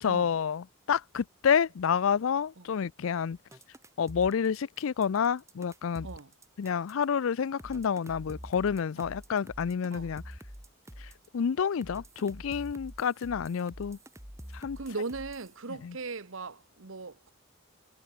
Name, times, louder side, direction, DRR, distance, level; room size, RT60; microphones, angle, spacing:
voice 1, 0.0-3.4 4.0-6.1 6.6-10.2 11.3-14.0 14.5-14.8 15.8-15.9, left 7 dB, 65° left, 0.4 m, -29 dB
sound 1, 3.5-7.0 7.6-11.3 11.8-15.6, equal, 15° right, 4.1 m, -47 dB
voice 2, 14.8-17.3, right 3 dB, 65° right, 1.0 m, -39 dB
head